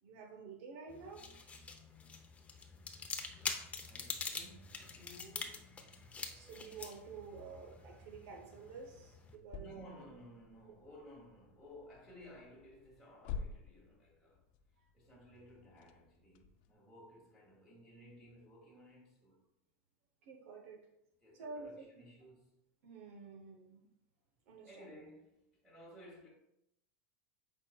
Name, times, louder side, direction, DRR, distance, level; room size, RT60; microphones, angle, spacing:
voice 1, 0.0-1.3 6.3-9.7 20.2-20.9 21.3-21.9 22.8-23.9 24.5-24.9, right 4 dB, 65° right, 1.0 m, -50 dB
sound 1, 0.9-9.4, left 4 dB, 20° left, 0.7 m, -45 dB
voice 2, 3.3-5.7 9.5-14.4 14.9-19.4 21.2-22.5 24.6-26.3, equal, ahead, 1.9 m, -57 dB
sound 2, 3.5-16.7, left 6 dB, 60° left, 0.5 m, -53 dB
8.1 x 5.0 x 2.3 m
supercardioid pair, 120°, 7 cm